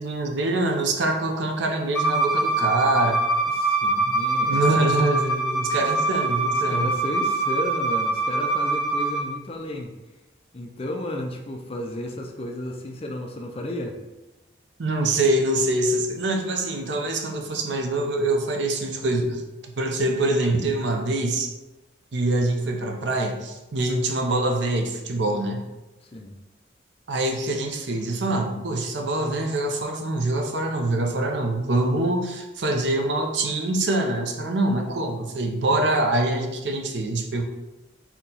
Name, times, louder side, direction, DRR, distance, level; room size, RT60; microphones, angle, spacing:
voice 1, 0.0-3.2 4.4-6.9 14.8-21.5 22.1-25.7 27.1-37.4, right 2 dB, 75° right, 3 dB, 0.6 m, -24 dB
Bowed string instrument, 1.9-9.2, right 2 dB, 10° left, 1.4 m, -24 dB
voice 2, 3.4-4.9 6.5-9.9 10.5-14.0 26.0-26.4, left 1 dB, 30° left, 3 dB, 0.4 m, -33 dB
4.2 x 2.9 x 3.8 m, 1.0 s
head